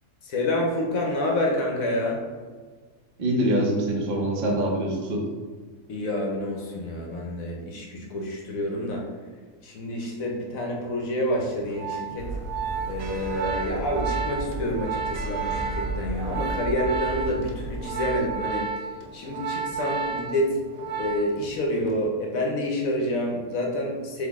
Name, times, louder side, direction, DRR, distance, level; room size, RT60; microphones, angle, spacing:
voice 1, 0.2-2.2 5.9-9.0 9.6-12.3 12.8-18.7 19.1-20.6 21.0-24.3, left 1 dB, 65° left, -1 dB, 1.1 m, -28 dB
voice 2, 3.2-5.2, right 1 dB, 45° right, -1 dB, 0.6 m, -24 dB
Organ, 11.5-21.5 21.8-22.1, right 6 dB, 90° right, 1.2 m, -32 dB
sound 1, 12.2-18.7, right 2 dB, 70° right, 0.9 m, -34 dB
3.9 x 3.3 x 3.5 m, 1.5 s
omnidirectional pair, 1.7 m